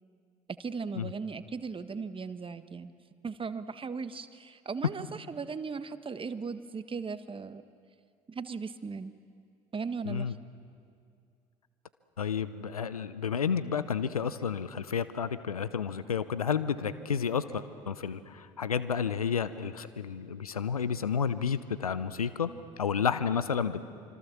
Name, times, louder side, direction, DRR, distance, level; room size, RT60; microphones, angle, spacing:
voice 1, 0.6-2.9 3.2-7.6 8.3-9.1 9.7-10.4, right 5 dB, 30° right, 11 dB, 1.5 m, -37 dB
voice 2, 12.2-22.5 22.8-23.8, left 7 dB, 90° left, 14 dB, 0.8 m, -31 dB
26.0 x 25.0 x 7.3 m, 2.3 s
figure-of-eight pair, 55°, 18 cm